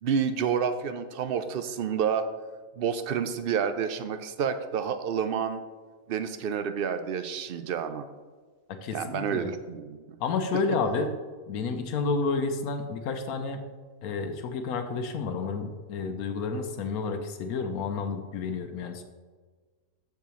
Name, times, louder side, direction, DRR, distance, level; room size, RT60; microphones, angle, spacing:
voice 1, 0.0-2.3 2.8-5.6 6.1-8.1 8.9-10.0, right 7 dB, 65° right, 10 dB, 0.6 m, -29 dB
voice 2, 8.8-9.5 10.2-11.1 11.5-13.6 14.0-19.0, left 4 dB, 90° left, 6 dB, 1.2 m, -30 dB
13.5 x 4.7 x 3.1 m, 1.4 s
omnidirectional pair, 1.5 m